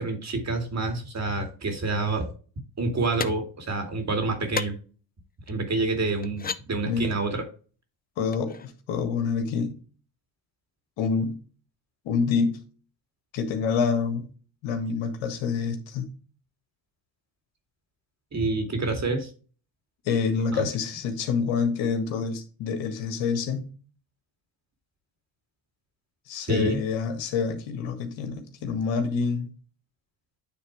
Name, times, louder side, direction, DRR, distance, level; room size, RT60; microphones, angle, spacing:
voice 1, 0.0-2.3 2.8-4.7 5.5-7.4 18.3-19.3 20.5-20.7 26.5-26.8, right 3 dB, 35° right, 5 dB, 2.4 m, -28 dB
sound 1, 3.2-3.3 4.5-4.7 5.5-5.6 6.2-6.6 8.3-8.7, left 6 dB, 20° left, 0.5 m, -31 dB
voice 2, 8.2-9.7 11.0-11.3 12.0-12.6 13.3-14.3 14.6-16.1 20.0-23.7 26.3-29.5, left 5 dB, 80° left, 6 dB, 1.7 m, -27 dB
9.3 x 3.6 x 4.7 m, 0.38 s
supercardioid pair, 70°, 45 cm